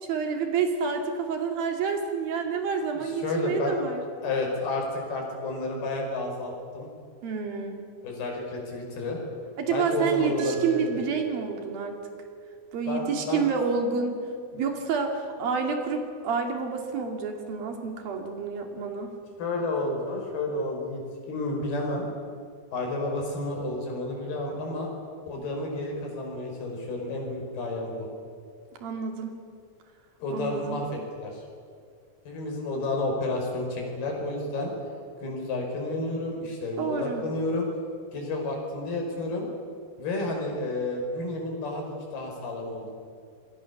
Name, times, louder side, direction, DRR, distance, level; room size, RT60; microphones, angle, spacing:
voice 1, 0.0-4.0 7.2-7.9 9.6-12.0 12.7-14.2 14.5-19.1 28.8-29.4 30.3-30.9 36.8-37.2, right 5 dB, 70° right, 4 dB, 4.3 m, -29 dB
voice 2, 2.9-3.8 4.2-6.9 8.0-9.2 9.7-10.8 12.9-13.5 19.4-21.0 21.3-22.1 22.7-24.9 25.3-28.1 30.2-31.4 32.3-34.7 35.2-37.7 38.1-39.5 40.0-42.9, left 2 dB, 85° left, 1 dB, 7.1 m, -31 dB
Mallet percussion, 10.4-13.3, right 9 dB, 40° right, 2.0 m, -38 dB
27.5 x 22.0 x 7.2 m, 2.2 s
omnidirectional pair, 4.3 m